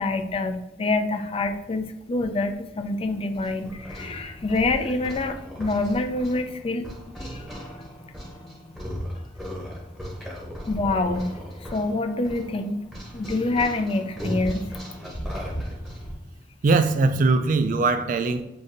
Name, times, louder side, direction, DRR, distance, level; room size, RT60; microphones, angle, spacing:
voice 1, 0.0-6.9 7.2-7.6 10.7-12.8 13.1-14.8, left 2 dB, 30° left, 8 dB, 0.3 m, -26 dB
sound 1, 3.0-16.1, equal, ahead, 0.9 m, -37 dB
voice 2, 16.6-18.4, right 3 dB, 45° right, 9 dB, 0.3 m, -21 dB
6.6 x 2.6 x 2.6 m, 0.96 s
head